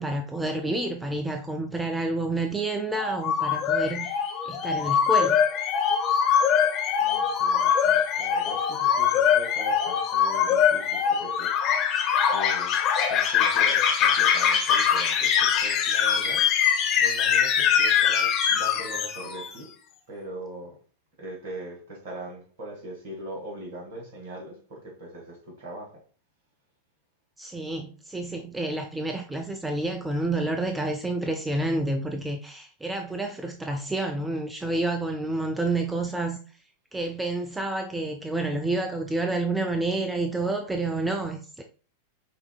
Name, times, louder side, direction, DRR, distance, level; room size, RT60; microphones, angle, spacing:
voice 1, 0.0-5.4 27.4-36.4 36.9-41.6, right 2 dB, 10° right, 0.4 m, -29 dB
sound 1, 3.0-19.5, left 8 dB, 35° left, 0.6 m, -23 dB
voice 2, 7.0-11.9 12.3-16.4 17.0-19.7 20.1-20.7 21.2-26.0, right 1 dB, 55° right, 1.8 m, -41 dB
5.8 x 2.7 x 2.2 m
figure-of-eight pair, 90°, 0 cm